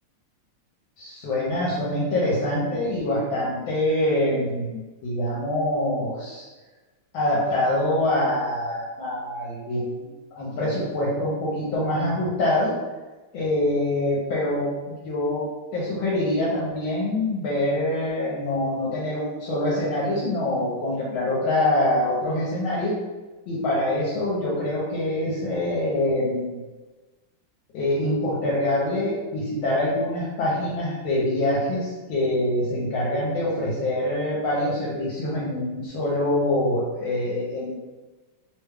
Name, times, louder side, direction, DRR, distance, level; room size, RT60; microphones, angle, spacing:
voice 1, 1.0-6.4 7.1-10.0 10.3-12.7 13.3-15.5 15.7-23.0 23.5-26.6 27.7-37.7, left 1 dB, 75° left, -6 dB, 1.5 m, -25 dB
3.4 x 2.2 x 3.3 m, 1.2 s
omnidirectional pair, 2.3 m